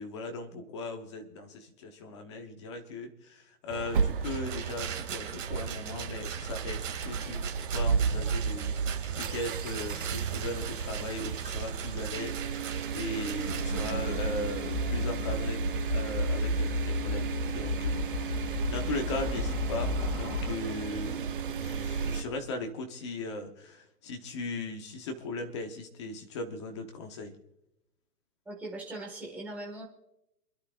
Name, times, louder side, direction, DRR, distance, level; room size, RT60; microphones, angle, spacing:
voice 1, 0.0-15.6 15.9-27.3, left 2 dB, 20° left, 4 dB, 1.0 m, -38 dB
sound 1, 3.7-22.2, right 6 dB, 35° right, 0.9 m, -33 dB
Rattle, 4.2-13.9, right 9 dB, 50° right, 2.5 m, -41 dB
sound 2, 13.5-20.6, left 3 dB, 80° left, 2.2 m, -33 dB
voice 2, 28.4-29.8, right 2 dB, 5° right, -3 dB, 1.8 m, -40 dB
28.0 x 11.5 x 2.5 m, 0.87 s
hypercardioid pair, 170°, 48 cm